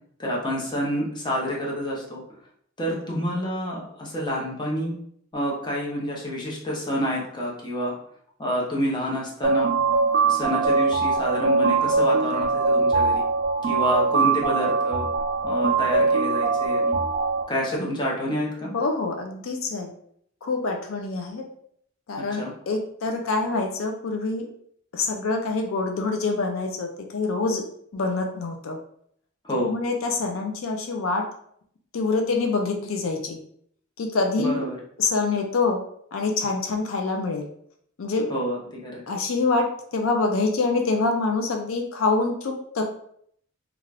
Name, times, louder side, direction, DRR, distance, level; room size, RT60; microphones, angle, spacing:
voice 1, 0.2-2.2 2.8-4.9 5.3-7.9 8.4-9.7 10.3-13.2 13.6-15.1 15.4-17.0 17.5-18.7 22.3-22.5 29.5-29.8 34.4-34.8 38.3-39.0, equal, 20° left, -4 dB, 0.7 m, -28 dB
sound 1, 9.4-17.4, right 4 dB, 50° right, 0.4 m, -22 dB
voice 2, 18.7-19.9 20.4-21.5 22.1-24.4 24.9-27.6 27.9-28.8 29.5-31.2 31.9-33.4 34.0-34.7 35.0-35.8 36.1-37.5 38.0-38.3 39.1-39.7 39.9-42.8, left 3 dB, 80° left, 3 dB, 0.4 m, -25 dB
2.4 x 2.3 x 3.2 m, 0.66 s
head